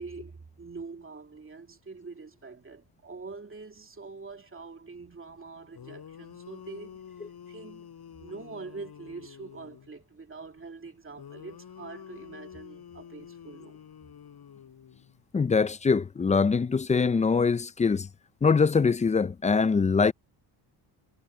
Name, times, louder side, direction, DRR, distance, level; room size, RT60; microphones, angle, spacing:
voice 1, 0.0-7.9 8.2-13.8, right 4 dB, 25° right, 2.7 m, -44 dB
sound 1, 5.5-5.6 5.7-9.9 11.2-15.2, left 8 dB, 50° left, 6.8 m, -48 dB
voice 2, 15.3-18.1 18.4-20.1, left 5 dB, 15° left, 0.4 m, -23 dB
cardioid pair, 115°, 46 cm